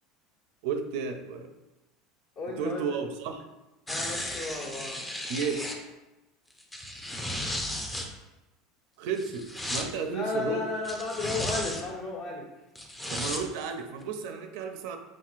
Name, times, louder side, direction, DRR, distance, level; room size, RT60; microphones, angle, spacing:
voice 1, 0.6-1.5 2.6-3.5 5.3-5.7 9.0-10.6 13.1-15.0, right 5 dB, 70° right, 6 dB, 0.5 m, -33 dB
voice 2, 2.3-2.8 3.9-5.0 10.1-12.5, left 3 dB, 50° left, -3 dB, 1.3 m, -33 dB
sound 1, 3.9-5.8 6.6-8.1 9.2-9.9 10.8-11.8 12.7-13.4 14.0-14.1, left 1 dB, 10° left, 0.5 m, -34 dB
4.5 x 3.7 x 2.5 m, 1.0 s
supercardioid pair, 140°, 0 cm